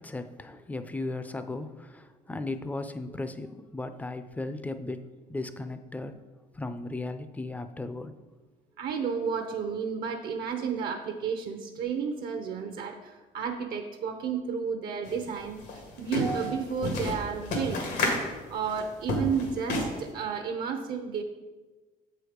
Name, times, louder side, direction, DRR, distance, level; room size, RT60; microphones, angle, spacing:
voice 1, 0.0-6.2 6.6-8.1, left 2 dB, 10° left, 10 dB, 0.4 m, -36 dB
voice 2, 8.8-17.8 18.5-21.2, right 6 dB, 65° right, 5 dB, 0.7 m, -32 dB
sound 1, 15.0-15.1 15.5-20.1, left 1 dB, 85° left, 1.8 m, -30 dB
7.6 x 4.8 x 5.0 m, 1.2 s
cardioid pair, 110°, 17 cm